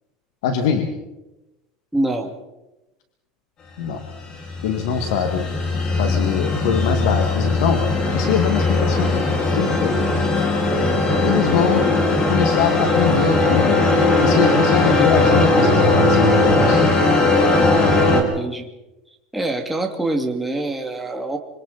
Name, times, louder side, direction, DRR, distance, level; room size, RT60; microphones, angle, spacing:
voice 1, 0.4-0.9 3.8-4.0 4.6-5.5 6.0-7.8 8.1-9.2 9.6-9.9 11.2-11.9 12.3-13.8 14.2-16.9, left 7 dB, 85° left, 4 dB, 2.2 m, -22 dB
voice 2, 1.9-2.3 18.1-18.7 19.3-21.4, right 2 dB, 5° right, 1 dB, 2.7 m, -25 dB
sound 1, 4.1-18.2, left 2 dB, 35° left, 4.9 m, -18 dB
25.5 x 25.5 x 4.3 m, 1.0 s
supercardioid pair, 130°, 2 cm